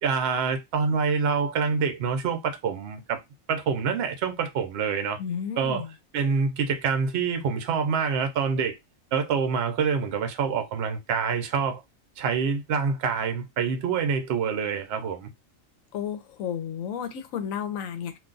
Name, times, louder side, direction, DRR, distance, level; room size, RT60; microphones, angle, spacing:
voice 1, 0.0-3.2 3.5-5.2 5.6-5.8 6.1-8.8 9.1-11.8 12.2-15.3, right 6 dB, 60° right, 0.8 m, -26 dB
voice 2, 5.2-5.9 15.9-18.2, left 8 dB, 80° left, 1.0 m, -32 dB
2.5 x 2.3 x 3.7 m
omnidirectional pair, 1.4 m